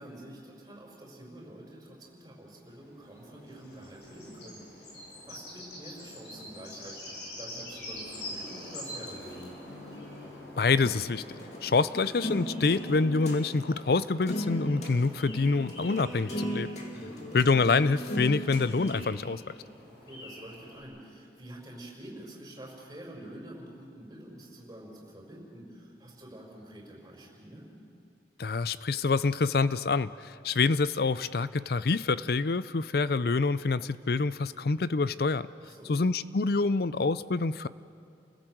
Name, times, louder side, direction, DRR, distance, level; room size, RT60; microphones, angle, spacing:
voice 1, 0.0-4.6 4.9-5.0 5.3-7.0 7.3-9.6 16.9-17.3 19.9-27.7 35.6-36.0, right 1 dB, 20° right, -1 dB, 5.0 m, -47 dB
sound 1, 2.6-20.8, left 1 dB, 75° left, 6.4 m, -46 dB
sound 2, 9.7-13.4 13.8-13.9 14.3-15.0 15.3-19.1, equal, 40° left, 2.6 m, -37 dB
voice 2, 10.6-11.2 11.6-16.7 17.3-19.4 28.4-35.5 35.9-37.7, left 4 dB, 55° left, 16 dB, 0.5 m, -26 dB
29.5 x 16.0 x 7.9 m, 2.5 s
head